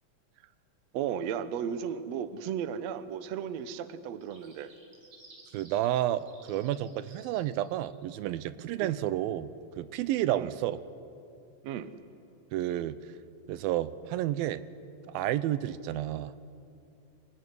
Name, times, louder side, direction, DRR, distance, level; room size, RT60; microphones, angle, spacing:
voice 1, 0.9-4.7 8.8-9.0 10.3-10.5 11.6-11.9, right 8 dB, 70° right, 12 dB, 1.7 m, -35 dB
sound 1, 4.2-8.3, right 2 dB, 35° right, 4.6 m, -57 dB
voice 2, 5.5-9.5 9.8-10.8 12.5-13.0 13.5-14.6 15.1-16.3, right 13 dB, 90° right, 15 dB, 2.6 m, -30 dB
26.0 x 19.5 x 9.8 m, 2.5 s
omnidirectional pair, 4.1 m